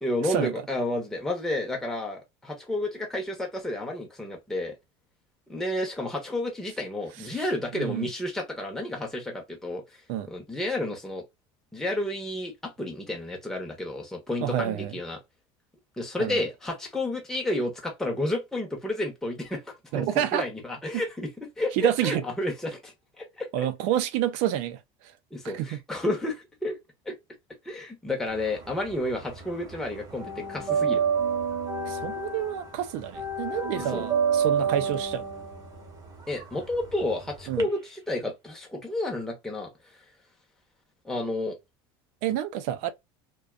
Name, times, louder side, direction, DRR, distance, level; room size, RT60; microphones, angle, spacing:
voice 1, 0.0-4.7 5.5-10.0 10.3-11.2 11.7-15.2 16.0-21.3 21.6-23.7 25.3-26.8 27.1-27.2 27.6-31.0 33.9-34.0 36.3-39.7 41.0-41.6, left 1 dB, 5° left, 0.8 m, -31 dB
voice 2, 7.7-8.1 10.1-10.3 14.4-15.0 16.2-16.4 19.9-20.4 20.9-21.0 21.7-22.2 23.5-24.8 25.4-25.7 31.9-35.2 37.5-37.7 42.2-42.9, right 11 dB, 70° right, 0.5 m, -28 dB
sound 1, 28.3-29.5 29.7-37.6, right 6 dB, 30° right, 0.8 m, -28 dB
2.5 x 2.2 x 2.3 m
supercardioid pair, 125°, 13 cm